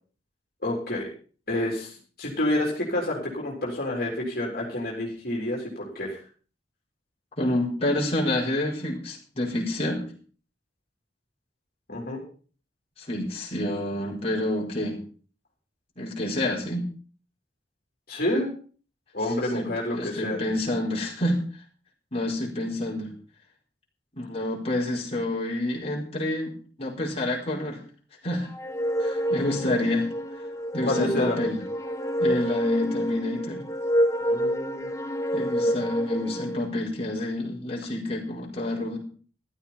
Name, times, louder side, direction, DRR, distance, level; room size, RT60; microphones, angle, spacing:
voice 1, 0.6-1.1 1.5-6.2 11.9-12.2 18.1-18.5 19.1-20.4 30.8-31.4 34.3-34.9, left 1 dB, 55° left, -2 dB, 3.9 m, -28 dB
voice 2, 7.4-10.1 13.0-15.0 16.0-16.9 19.5-21.4 22.1-23.1 24.2-27.8 28.2-28.5 29.0-30.1 30.7-31.6 32.2-33.7 35.3-39.0, left 1 dB, 35° left, -3 dB, 4.8 m, -28 dB
sound 1, 28.5-36.7, equal, 15° left, 1.2 m, -28 dB
14.5 x 12.5 x 4.4 m, 0.41 s
head